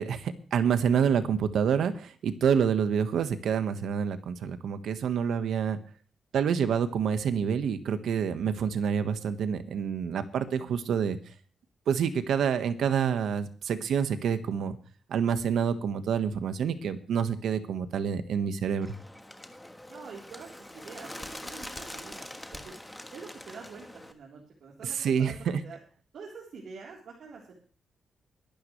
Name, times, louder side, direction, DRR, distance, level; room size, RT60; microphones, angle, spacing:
voice 1, 0.0-5.8 6.3-11.2 11.9-14.8 15.1-18.9 24.8-25.6, right 7 dB, 80° right, 10 dB, 1.4 m, -27 dB
Bird, 18.8-24.1, left 1 dB, 5° left, 1.4 m, -44 dB
voice 2, 19.9-22.7 23.1-25.8 26.1-27.5, right 5 dB, 65° right, -3 dB, 3.8 m, -46 dB
22.5 x 12.0 x 3.3 m, 0.38 s
wide cardioid pair, 160°, 0 cm